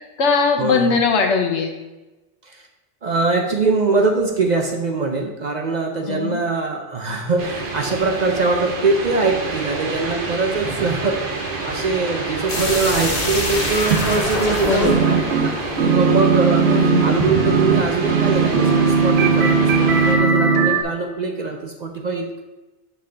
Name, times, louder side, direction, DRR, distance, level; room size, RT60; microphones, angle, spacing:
voice 1, 0.0-1.7 6.1-6.4 14.7-15.1 16.6-17.3, left 5 dB, 80° left, 4 dB, 1.1 m, -20 dB
voice 2, 0.6-0.9 2.4-2.6 3.0-11.3 11.6-15.2 15.8-22.4, right 3 dB, 50° right, 2 dB, 0.6 m, -22 dB
sound 1, 7.4-20.2, right 4 dB, 85° right, 1.4 m, -27 dB
sound 2, 12.5-17.2, left 1 dB, 40° left, 1.3 m, -26 dB
sound 3, 14.8-15.5 15.8-20.8, right 5 dB, 70° right, 0.9 m, -17 dB
6.0 x 5.5 x 3.8 m, 1.1 s
omnidirectional pair, 1.2 m